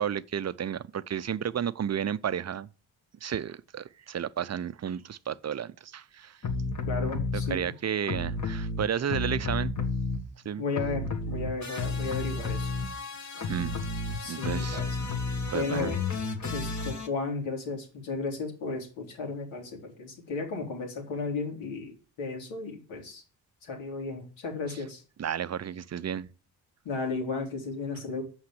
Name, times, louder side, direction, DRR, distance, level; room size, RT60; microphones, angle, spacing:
voice 1, 0.0-2.7 3.2-6.4 7.3-9.7 10.4-10.6 13.4-13.8 14.3-14.8 15.5-16.0 25.2-26.3, right 8 dB, 35° right, 0.6 m, -32 dB
sound 1, 6.4-7.6 8.0-10.5 10.7-17.1, left 3 dB, 35° left, 2.0 m, -32 dB
voice 2, 6.9-7.7 10.6-12.7 14.1-15.0 15.5-15.9 16.5-23.2 23.6-25.0 26.8-28.2, left 3 dB, 75° left, 3.2 m, -34 dB
7.5 x 5.9 x 7.7 m
hypercardioid pair, 50°, 46 cm